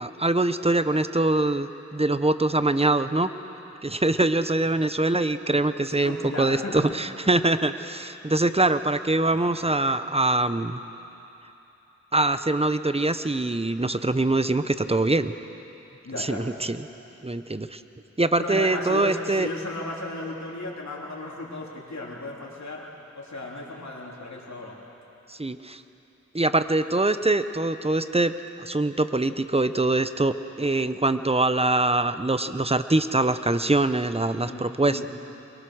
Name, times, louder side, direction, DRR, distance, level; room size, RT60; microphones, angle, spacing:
voice 1, 0.0-3.3 3.8-10.8 12.1-15.3 16.2-16.9 17.2-17.8 18.2-19.5 25.3-25.8 26.3-35.1, right 2 dB, 20° right, 11 dB, 0.9 m, -23 dB
voice 2, 5.9-6.8 16.0-16.5 18.4-22.9 23.1-24.8 34.3-35.1, left 2 dB, 70° left, -3 dB, 3.6 m, -35 dB
23.0 x 22.5 x 6.4 m, 3.0 s
wide cardioid pair, 40°, 29 cm